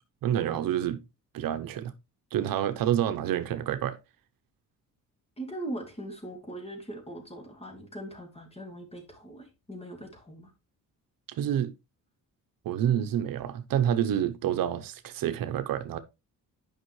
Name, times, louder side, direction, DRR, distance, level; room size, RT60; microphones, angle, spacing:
voice 1, 0.2-1.0 1.3-1.9 2.3-4.0 11.4-11.7 12.6-16.0, right 10 dB, 70° right, 0.8 m, -28 dB
voice 2, 5.4-10.5, right 1 dB, 15° left, 2.3 m, -40 dB
9.2 x 5.4 x 3.1 m
cardioid pair, 120°, 35 cm